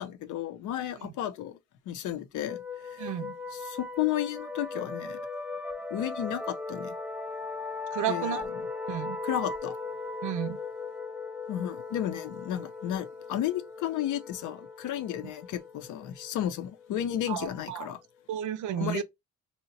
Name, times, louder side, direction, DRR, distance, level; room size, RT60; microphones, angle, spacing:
voice 1, 0.0-1.6 1.9-3.1 3.7-5.2 5.9-6.9 8.1-8.4 9.2-9.8 11.5-18.0 18.8-19.0, left 11 dB, 80° left, 0.6 m, -33 dB
sound 1, 2.5-17.8, left 4 dB, 5° right, 0.4 m, -38 dB
voice 2, 3.0-3.3 7.9-8.5 8.9-9.2 10.2-10.6 15.2-15.3 17.3-17.9 18.3-19.0, right 11 dB, 75° right, 0.6 m, -33 dB
2.9 x 2.1 x 3.8 m
cardioid pair, 90°, 30 cm